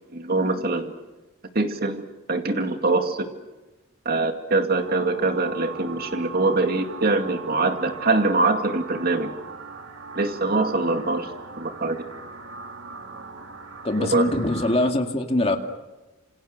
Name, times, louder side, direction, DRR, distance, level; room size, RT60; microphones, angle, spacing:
voice 1, 0.1-0.9 1.5-3.3 4.1-9.3 10.2-11.3 11.5-12.0 14.0-14.4, right 3 dB, 45° right, 6 dB, 2.3 m, -23 dB
sound 1, 4.8-14.9, right 4 dB, 70° right, 2.2 m, -39 dB
voice 2, 13.8-15.6, left 1 dB, 30° left, 4 dB, 2.2 m, -23 dB
27.5 x 27.0 x 6.7 m, 1.1 s
head